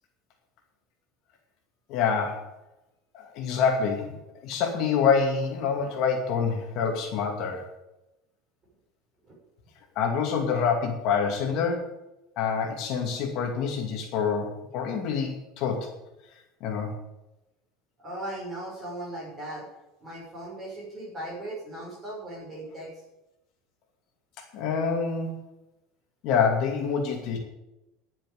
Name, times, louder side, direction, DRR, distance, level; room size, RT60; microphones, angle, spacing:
voice 1, 1.9-2.5 3.1-4.1 4.4-7.6 10.0-11.9 12.4-15.9 16.6-16.9 24.5-25.4 26.2-27.4, left 6 dB, 50° left, 1 dB, 2.4 m, -26 dB
voice 2, 18.0-19.7 20.0-23.0, right 1 dB, 20° right, -4 dB, 5.8 m, -38 dB
11.0 x 7.4 x 9.4 m, 0.93 s
cardioid pair, 165°, 0 cm